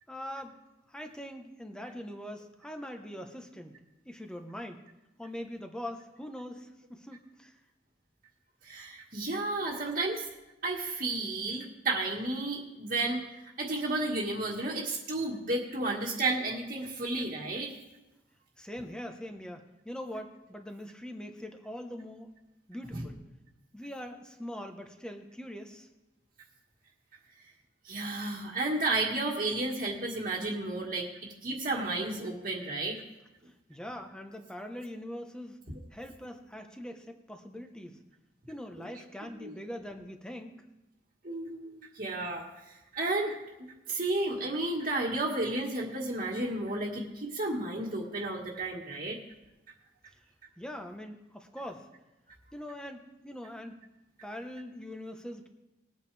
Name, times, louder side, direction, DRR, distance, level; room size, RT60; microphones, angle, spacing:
voice 1, 0.1-0.6 0.9-3.8 4.0-4.8 5.2-7.6 18.6-22.3 22.7-23.2 23.7-25.9 33.7-35.6 35.9-38.0 38.5-40.6 50.6-51.9 52.5-53.8 54.2-55.5, equal, 5° left, 4 dB, 1.1 m, -42 dB
voice 2, 8.6-10.3 10.6-17.7 22.9-23.1 27.8-31.1 31.4-33.0 35.7-35.8 39.4-39.5 41.2-43.4 43.9-49.2, right 2 dB, 50° right, -6 dB, 1.7 m, -32 dB
20.5 x 9.1 x 3.4 m, 1.0 s
head